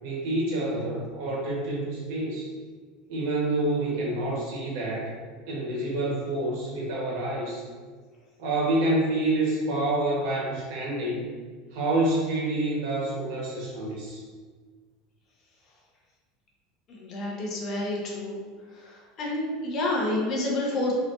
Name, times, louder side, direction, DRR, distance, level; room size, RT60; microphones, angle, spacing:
voice 1, 0.0-2.5 3.1-5.1 5.5-7.6 8.4-11.2 11.7-14.2, right 2 dB, 65° right, -4 dB, 1.3 m, -27 dB
voice 2, 16.9-18.4 18.8-20.9, left 2 dB, 35° left, -2 dB, 0.9 m, -29 dB
4.0 x 3.0 x 2.6 m, 1.5 s
supercardioid pair, 150°, 0 cm